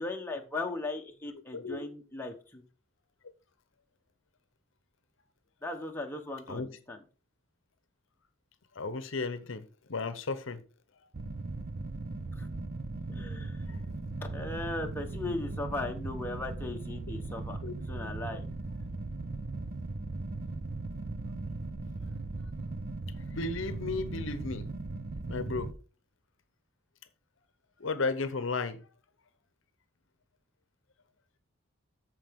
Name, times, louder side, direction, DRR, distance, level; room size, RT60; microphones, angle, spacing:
voice 1, 0.0-2.6 5.6-7.0 12.4-12.5 13.1-13.7 14.2-17.6 17.9-18.4, left 2 dB, 10° left, 1.1 m, -37 dB
voice 2, 8.7-9.6 9.9-10.6 13.7-13.9 17.6-17.7 23.3-24.7 25.3-25.7 27.8-28.8, left 3 dB, 60° left, 0.8 m, -34 dB
sound 1, 11.1-25.7, right 2 dB, 45° right, 0.6 m, -38 dB
13.5 x 4.8 x 3.6 m
head